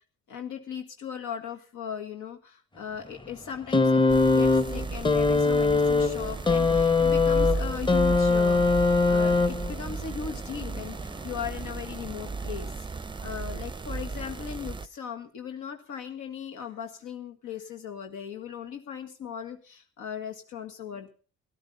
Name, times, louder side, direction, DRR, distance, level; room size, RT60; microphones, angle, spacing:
voice 1, 0.3-21.1, left 8 dB, 80° left, 4 dB, 1.8 m, -38 dB
sound 1, 3.7-9.9 10.9-11.0, left 3 dB, 15° left, 1.0 m, -22 dB
sound 2, 4.1-14.9, right 4 dB, 15° right, 0.6 m, -34 dB
13.5 x 12.0 x 5.5 m, 0.38 s
cardioid pair, 90°, 30 cm